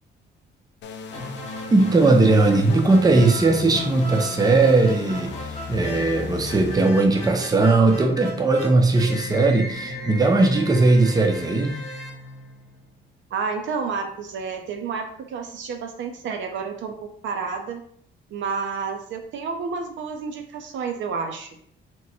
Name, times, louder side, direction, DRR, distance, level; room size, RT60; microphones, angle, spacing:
sound 1, 0.8-6.7, left 5 dB, 65° left, 0.4 m, -36 dB
sound 2, 1.1-13.0, left 1 dB, 35° left, 0.9 m, -36 dB
voice 1, 1.7-5.3 5.7-11.8, right 3 dB, 20° right, 4 dB, 0.5 m, -18 dB
voice 2, 13.3-17.8 18.3-21.5, right 5 dB, 70° right, 4 dB, 0.6 m, -30 dB
3.0 x 2.2 x 4.0 m, 0.62 s
cardioid pair, 90°, 20 cm